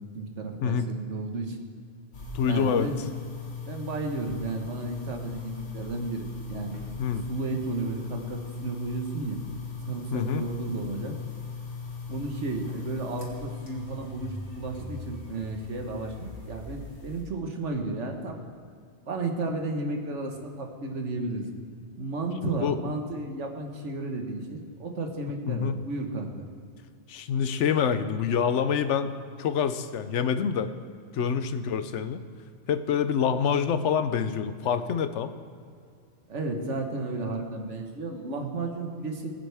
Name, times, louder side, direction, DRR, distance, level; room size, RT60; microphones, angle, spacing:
voice 1, 0.0-1.6 2.4-3.0 3.7-9.4 9.9-11.2 12.1-18.4 19.1-21.5 22.0-26.3 31.2-31.4 36.3-39.4, right 3 dB, 80° right, 2 dB, 1.7 m, -33 dB
sound 1, 2.1-17.2, left 4 dB, 65° left, 2.5 m, -39 dB
voice 2, 2.3-2.9 7.0-7.2 10.1-10.4 22.6-22.8 25.5-25.8 27.1-29.1 29.4-30.7 31.1-32.2 32.7-35.3, left 7 dB, 80° left, 11 dB, 1.0 m, -26 dB
20.0 x 9.0 x 3.5 m, 2.3 s
omnidirectional pair, 1.2 m